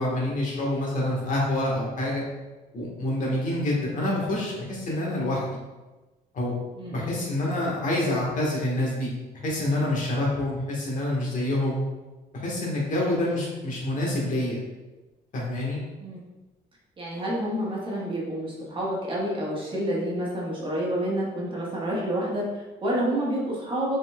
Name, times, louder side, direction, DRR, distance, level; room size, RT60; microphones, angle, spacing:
voice 1, 0.0-2.2 2.7-5.5 6.3-6.5 6.9-9.1 9.4-11.8 12.4-14.6 15.3-15.8, left 1 dB, 50° left, -3 dB, 1.4 m, -27 dB
voice 2, 6.7-7.2 12.9-13.2 16.0-16.2 17.0-24.0, right 1 dB, 30° right, -5 dB, 1.3 m, -29 dB
5.2 x 3.9 x 2.3 m, 1.2 s
cardioid pair, 110°, 17 cm